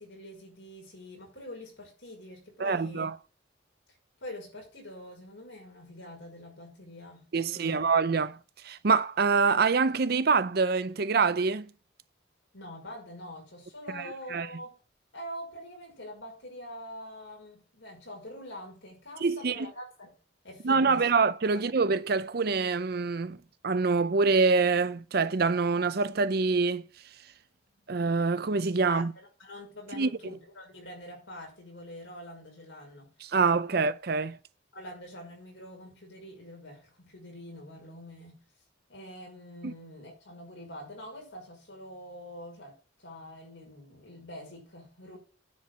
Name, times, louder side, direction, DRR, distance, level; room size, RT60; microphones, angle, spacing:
voice 1, 0.0-3.1 4.2-7.8 12.5-14.8 15.1-20.1 20.4-21.1 21.5-21.9 28.8-33.1 33.7-33.8 34.7-38.4 38.9-45.2, left 1 dB, 75° left, 5.8 m, -45 dB
voice 2, 2.6-3.2 7.3-8.4 8.6-11.7 13.9-14.0 14.3-14.5 19.2-19.5 20.6-23.4 23.6-26.8 27.9-29.1 29.9-30.1 33.3-34.4 39.6-39.7, right 4 dB, 55° right, 0.6 m, -25 dB
9.7 x 4.7 x 7.9 m
head